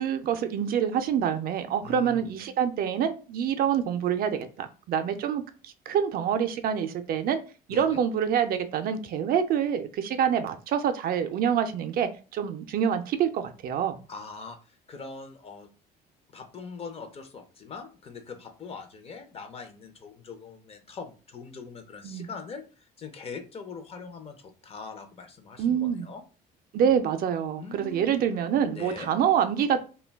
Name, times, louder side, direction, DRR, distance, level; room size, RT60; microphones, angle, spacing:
voice 1, 0.0-7.4 7.7-14.0 22.0-22.3 25.6-26.1 26.7-29.8, right 8 dB, 60° right, 8 dB, 0.4 m, -26 dB
voice 2, 1.8-2.3 7.7-8.0 14.1-15.7 16.3-26.2 27.6-28.3 28.7-29.1, left 4 dB, 35° left, 7 dB, 0.5 m, -42 dB
2.2 x 2.2 x 3.3 m, 0.35 s
cardioid pair, 110°, 17 cm